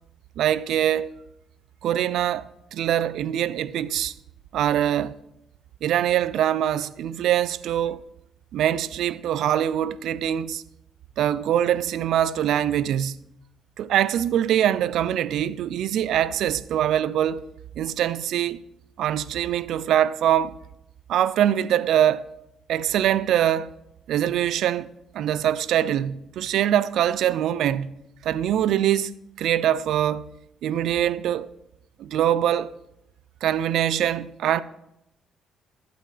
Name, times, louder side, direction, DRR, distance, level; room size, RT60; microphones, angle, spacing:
voice 1, 0.4-1.1 1.8-4.1 4.5-5.2 5.8-8.0 8.5-10.6 11.2-13.2 13.8-17.4 17.8-18.6 19.0-20.5 21.1-22.2 22.7-23.7 24.1-24.9 25.1-28.0 28.2-30.3 30.6-31.5 32.0-32.7 33.4-34.6, right 11 dB, 80° right, 0.5 m, -23 dB
20.5 x 7.8 x 3.4 m
cardioid pair, 90°, 0 cm